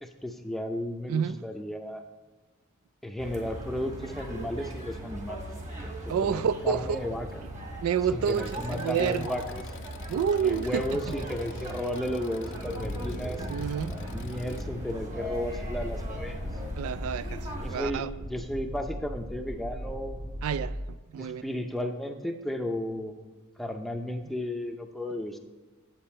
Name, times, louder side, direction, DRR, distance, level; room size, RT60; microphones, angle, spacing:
voice 1, 0.0-2.0 3.0-5.4 5.8-7.5 8.1-9.6 10.4-13.5 13.9-16.5 17.6-20.2 21.2-23.2 23.6-25.4, left 1 dB, ahead, 0.5 m, -34 dB
sound 1, 3.2-17.8, right 1 dB, 35° right, 1.5 m, -39 dB
voice 2, 6.1-7.0 7.8-9.3 10.1-11.1 13.5-14.0 16.8-17.4 17.7-18.1 20.4-21.4, right 7 dB, 80° right, 0.3 m, -29 dB
Engine, 8.2-14.6, left 6 dB, 60° left, 0.5 m, -49 dB
sound 2, 12.5-20.8, equal, 55° right, 1.5 m, -38 dB
9.0 x 7.8 x 4.3 m
head